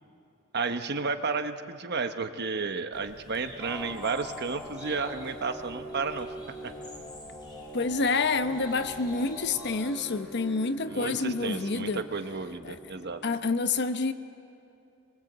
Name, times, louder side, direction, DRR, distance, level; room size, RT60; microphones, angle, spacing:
voice 1, 0.5-6.3 6.6-6.7 10.9-13.2, right 4 dB, 50° right, 8 dB, 1.1 m, -32 dB
Bird, 2.9-9.8, left 1 dB, 20° left, 4.9 m, -50 dB
sound 1, 3.6-13.4, equal, 5° left, 2.7 m, -43 dB
voice 2, 7.7-12.0 12.6-12.8 13.2-14.1, left 3 dB, 55° left, 10 dB, 1.0 m, -28 dB
24.0 x 22.5 x 8.0 m, 2.6 s
head